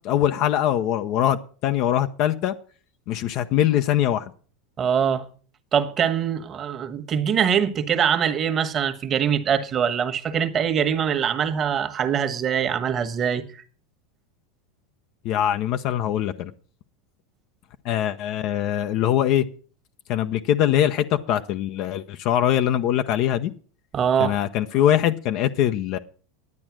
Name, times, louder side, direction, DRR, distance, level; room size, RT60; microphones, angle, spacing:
voice 1, 0.0-2.5 3.1-4.3 15.2-16.5 17.8-19.5 20.1-23.5 24.2-26.0, left 11 dB, 55° left, 0.7 m, -22 dB
voice 2, 4.8-5.2 5.7-13.4 23.9-24.4, right 8 dB, 35° right, 1.4 m, -23 dB
11.0 x 8.7 x 6.1 m
hypercardioid pair, 100°, 0 cm